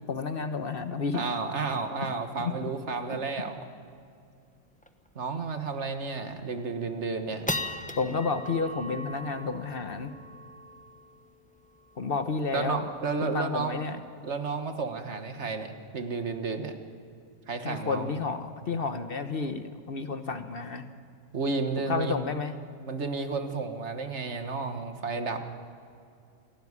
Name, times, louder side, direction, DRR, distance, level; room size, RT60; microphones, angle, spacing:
voice 1, 0.1-1.2 2.4-2.5 8.0-10.1 12.0-12.8 13.2-14.0 17.6-20.8 21.9-22.5, left 4 dB, 50° left, 9 dB, 1.2 m, -31 dB
voice 2, 1.1-3.6 5.1-7.5 12.5-13.8 14.2-16.8 17.5-18.1 21.3-22.2 22.8-25.4, right 4 dB, 65° right, 7 dB, 1.7 m, -32 dB
sound 1, 4.0-4.1 4.3-4.4 4.8-5.1 5.5-5.6 6.2-6.6 7.0-13.6, left 1 dB, 5° left, 1.0 m, -39 dB
27.5 x 12.5 x 9.7 m, 2.4 s
omnidirectional pair, 1.3 m